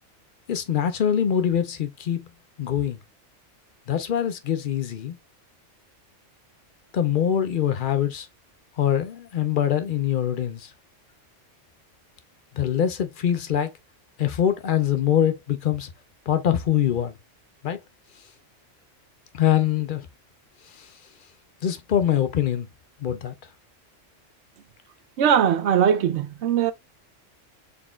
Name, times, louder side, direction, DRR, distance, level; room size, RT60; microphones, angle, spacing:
voice 1, 0.5-2.3 2.6-3.0 3.9-5.2 6.9-8.3 8.8-10.7 12.5-13.7 14.2-15.9 16.3-17.2 17.6-17.8 19.3-20.1 20.7-20.9 21.6-22.7 23.0-23.3, left 9 dB, 55° left, 0.6 m, -24 dB
voice 2, 25.2-26.7, right 8 dB, 70° right, 0.8 m, -20 dB
4.0 x 3.8 x 2.3 m
omnidirectional pair, 1.3 m